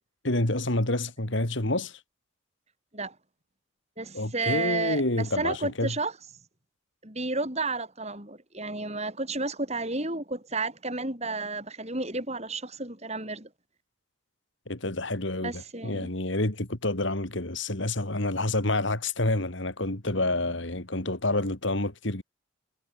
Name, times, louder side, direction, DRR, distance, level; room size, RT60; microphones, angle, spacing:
voice 1, 0.2-2.0 4.1-5.9 14.7-22.2, left 2 dB, 60° left, 3.0 m, -28 dB
voice 2, 4.0-6.2 7.0-13.5 15.4-16.1, right 3 dB, 30° right, 6.9 m, -32 dB
head